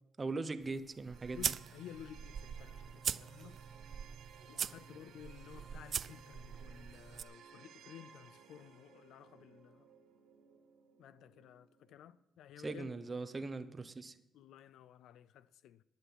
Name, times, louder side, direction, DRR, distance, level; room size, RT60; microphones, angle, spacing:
voice 1, 0.2-1.5 12.6-14.2, right 3 dB, 30° right, 1.0 m, -40 dB
sound 1, 0.6-7.2, right 7 dB, 55° right, 0.3 m, -42 dB
sound 2, 1.1-12.1, right 6 dB, 85° right, 1.4 m, -60 dB
voice 2, 1.3-3.6 4.5-9.9 11.0-12.9 14.3-15.8, left 10 dB, 80° left, 0.4 m, -54 dB
11.0 x 9.1 x 6.2 m
cardioid pair, 90°, 0 cm